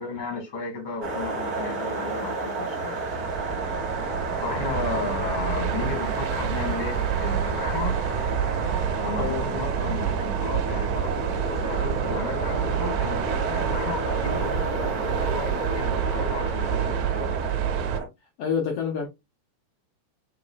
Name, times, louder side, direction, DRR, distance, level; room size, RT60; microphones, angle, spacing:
voice 1, 0.0-3.0 4.4-8.0 8.9-17.3, left 4 dB, 20° left, 1.3 m, -34 dB
sound 1, 1.0-18.0, right 3 dB, 50° right, 1.1 m, -30 dB
sound 2, 3.0-18.0, right 10 dB, 90° right, 2.2 m, -29 dB
voice 2, 8.8-9.4 18.4-19.1, left 7 dB, 85° left, 1.3 m, -28 dB
6.2 x 3.2 x 2.3 m
omnidirectional pair, 3.6 m